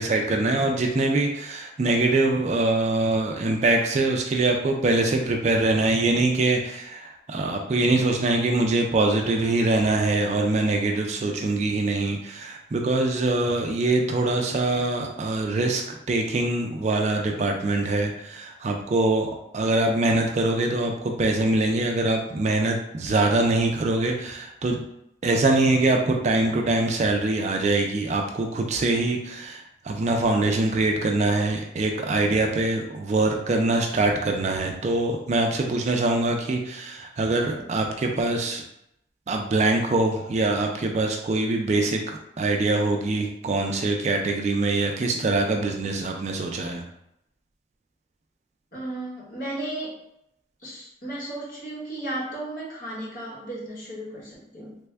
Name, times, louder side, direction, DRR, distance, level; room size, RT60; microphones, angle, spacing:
voice 1, 0.0-15.8 16.1-24.8 25.2-38.6 39.3-46.8, right 2 dB, 40° right, 2 dB, 0.3 m, -23 dB
voice 2, 48.7-50.0 50.6-54.8, right 1 dB, 45° left, -6 dB, 1.2 m, -34 dB
3.4 x 2.2 x 3.3 m, 0.80 s
head